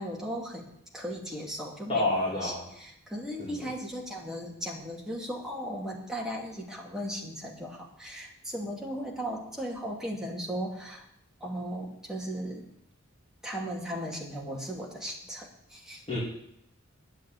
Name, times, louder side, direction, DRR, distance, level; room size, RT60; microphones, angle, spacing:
voice 1, 0.0-11.1 11.4-12.7 13.4-16.0, equal, 5° right, -3 dB, 2.4 m, -37 dB
voice 2, 1.9-2.6 3.4-3.5 16.1-16.2, left 2 dB, 30° left, -6 dB, 3.0 m, -28 dB
10.5 x 7.8 x 8.9 m, 0.76 s
head